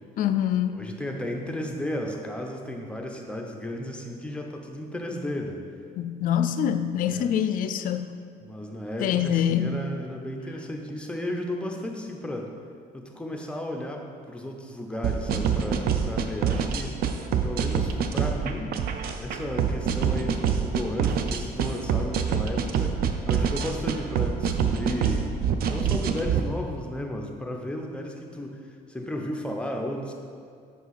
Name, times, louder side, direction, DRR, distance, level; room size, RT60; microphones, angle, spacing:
voice 1, 0.2-0.8 6.0-8.1 9.0-9.7, left 9 dB, 55° left, 11 dB, 0.4 m, -25 dB
voice 2, 0.7-5.6 7.0-7.3 8.4-12.5 12.9-17.0 17.4-18.8 19.2-23.0 23.3-25.3 25.7-28.6 28.9-30.1, left 1 dB, 5° left, 1 dB, 0.6 m, -34 dB
sound 1, 15.0-26.4, right 7 dB, 65° right, 0.5 m, -25 dB
5.6 x 4.6 x 4.1 m, 2.3 s
cardioid pair, 110°, 17 cm